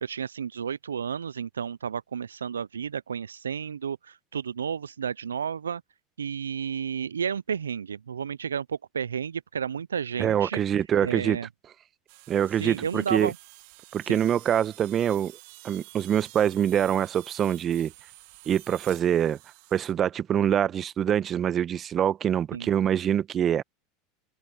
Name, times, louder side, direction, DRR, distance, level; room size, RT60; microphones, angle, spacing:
voice 1, 0.0-5.8 6.2-10.6 11.0-11.5 12.6-13.4 14.0-14.2 22.5-22.7, right 7 dB, 85° right, 0.4 m, -32 dB
voice 2, 10.2-11.4 12.3-13.3 13.9-15.3 15.6-17.9 18.5-19.4 19.7-23.6, right 9 dB, 35° right, 1.1 m, -25 dB
sound 1, 12.1-19.9, right 27 dB, 60° right, 1.6 m, -50 dB
open air
hypercardioid pair, 80°, 0 cm